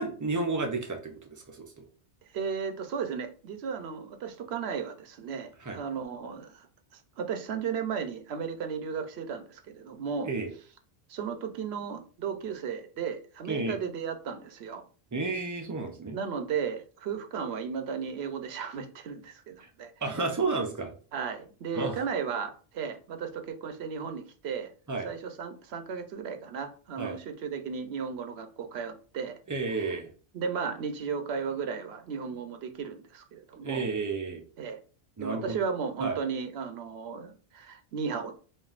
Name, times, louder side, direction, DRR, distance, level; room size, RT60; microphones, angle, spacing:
voice 1, 0.0-1.7 5.6-5.8 10.3-10.5 13.5-13.8 15.1-16.2 19.6-19.7 20.0-20.9 21.7-22.0 24.9-25.1 27.0-27.2 29.5-30.1 33.6-34.4 35.2-35.6 36.0-36.2, right 3 dB, 30° right, 0.3 m, -31 dB
voice 2, 2.3-6.7 6.9-10.3 11.1-14.8 16.1-19.9 21.1-24.7 25.0-29.4 30.3-33.9 34.6-34.8 35.2-38.3, right 6 dB, 70° right, 0.9 m, -35 dB
5.3 x 2.6 x 2.4 m
omnidirectional pair, 1.1 m